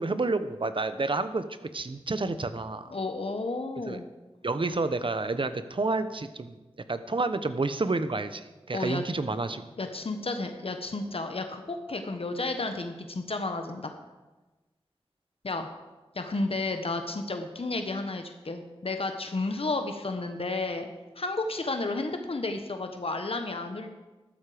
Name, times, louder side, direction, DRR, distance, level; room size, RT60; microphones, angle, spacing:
voice 1, 0.0-1.4 1.7-2.9 3.9-4.0 4.4-6.6 6.9-9.6, right 3 dB, 55° right, 11 dB, 1.0 m, -29 dB
voice 2, 2.9-4.1 8.7-9.0 9.8-13.9 15.4-15.7 16.1-20.9 21.2-23.9, left 2 dB, 65° left, 6 dB, 1.2 m, -32 dB
14.0 x 12.5 x 5.1 m, 1.2 s
wide cardioid pair, 55°, 11 cm